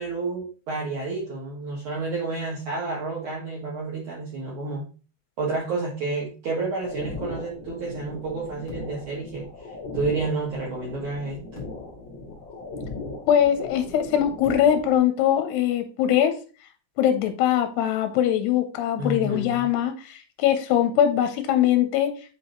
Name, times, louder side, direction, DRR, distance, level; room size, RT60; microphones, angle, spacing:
voice 1, 0.0-4.9 5.4-11.6 19.0-19.7, right 3 dB, 60° right, -5 dB, 2.4 m, -30 dB
sound 1, 6.8-15.0, left 3 dB, 40° left, 1.9 m, -38 dB
voice 2, 13.3-16.3 17.0-22.1, left 10 dB, 80° left, 7 dB, 2.6 m, -22 dB
7.8 x 4.0 x 3.1 m, 0.36 s
omnidirectional pair, 5.0 m